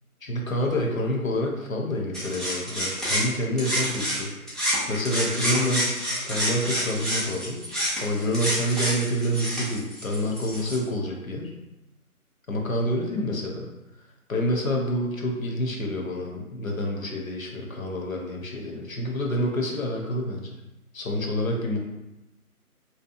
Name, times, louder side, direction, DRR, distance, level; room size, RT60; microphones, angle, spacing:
voice 1, 0.2-4.3 4.9-6.0 6.3-7.6 8.0-11.5 12.5-13.7 14.3-20.6 20.9-21.8, equal, 65° left, 0 dB, 0.6 m, -27 dB
sound 1, 2.1-4.2 4.5-10.8, equal, ahead, 0.4 m, -28 dB
2.7 x 2.1 x 2.4 m, 0.97 s
figure-of-eight pair, 160°, 44 cm